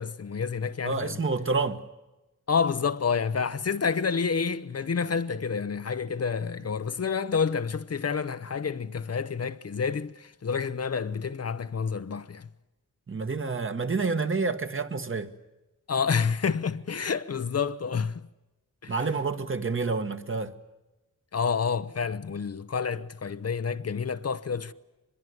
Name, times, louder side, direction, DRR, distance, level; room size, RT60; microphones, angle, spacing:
voice 1, 0.0-1.2 2.5-12.5 15.9-18.3 18.8-19.1 21.3-24.7, left 6 dB, 50° left, 0.8 m, -29 dB
voice 2, 0.8-1.8 13.1-15.3 18.9-20.5, right 4 dB, 40° right, 1.5 m, -28 dB
25.0 x 21.5 x 9.6 m
wide cardioid pair, 135°, 32 cm